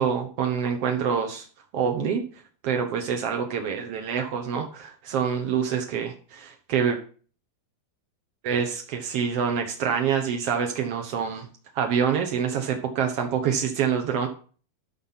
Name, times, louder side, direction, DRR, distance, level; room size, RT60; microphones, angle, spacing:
voice 1, 0.0-1.5 1.7-2.2 2.6-7.0 8.4-11.5 11.7-14.3, right 7 dB, 70° right, 4 dB, 1.4 m, -26 dB
13.0 x 6.1 x 5.7 m, 0.40 s
omnidirectional pair, 4.4 m